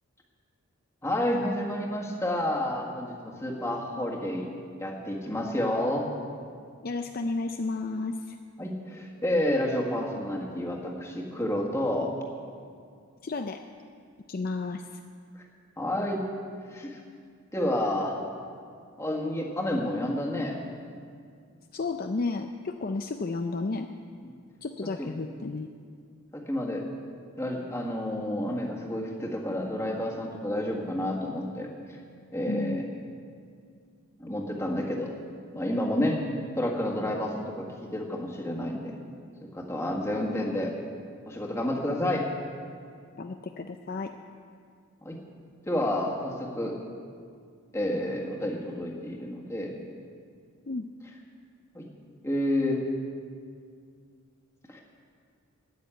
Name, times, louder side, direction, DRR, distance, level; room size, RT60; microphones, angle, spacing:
voice 1, 1.0-4.5 4.8-6.1 8.6-12.1 15.8-16.2 16.7-17.0 17.5-18.1 19.0-20.6 25.0-25.1 26.3-26.8 27.4-31.7 32.3-32.8 34.2-35.1 35.5-36.2 36.5-38.9 39.4-40.7 41.3-42.2 45.0-45.2 45.7-46.7 47.7-49.8 51.7-51.9 52.2-52.8 54.7-54.8, left 1 dB, 10° left, -2 dB, 1.7 m, -30 dB
voice 2, 6.8-8.4 13.2-13.6 14.3-15.0 21.7-23.9 24.6-25.7 32.5-32.8 43.2-44.1 50.7-50.9, left 3 dB, 40° left, 5 dB, 0.4 m, -32 dB
13.0 x 9.3 x 8.9 m, 2.2 s
head